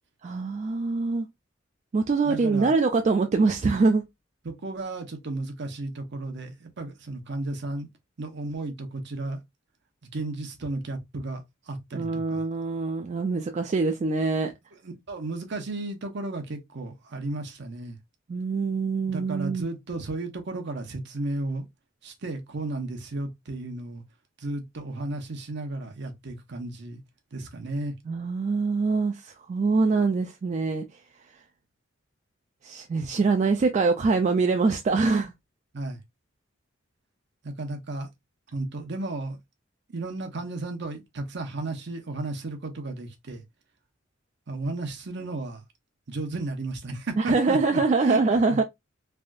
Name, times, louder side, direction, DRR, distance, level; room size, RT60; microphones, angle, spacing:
voice 1, 0.2-1.3 1.9-4.0 11.9-14.5 18.3-19.7 28.1-30.8 32.6-35.3 47.2-48.6, right 4 dB, 35° right, 0.3 m, -24 dB
voice 2, 2.2-2.8 4.4-7.9 8.2-9.4 10.1-12.4 14.8-18.0 19.1-21.7 22.0-24.0 24.4-27.0 27.3-27.9 35.7-36.0 37.4-38.1 38.5-39.4 39.9-43.4 44.5-45.6 46.1-48.6, right 2 dB, 60° right, 0.8 m, -34 dB
3.4 x 2.6 x 2.3 m
head